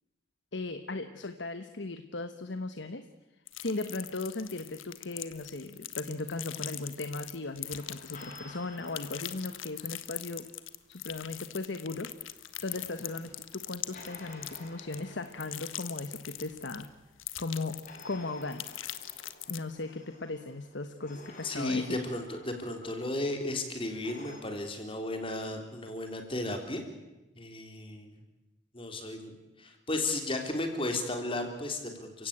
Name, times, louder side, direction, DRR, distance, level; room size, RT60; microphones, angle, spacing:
voice 1, 0.5-3.1 3.6-10.5 10.9-12.1 12.3-16.9 17.4-18.6 19.5-22.0, left 2 dB, 65° left, 9 dB, 1.2 m, -37 dB
sound 1, 3.5-8.5 8.8-16.9 17.2-18.1 18.4-19.6, left 14 dB, 90° left, 1.4 m, -41 dB
sound 2, 7.6-10.8 12.3-17.3 17.8-24.4, left 2 dB, 45° left, 6.3 m, -53 dB
voice 2, 21.4-26.8 27.3-28.1 28.7-29.3 29.6-32.3, left 2 dB, 25° left, 5 dB, 3.2 m, -34 dB
29.5 x 16.5 x 8.7 m, 1.1 s
head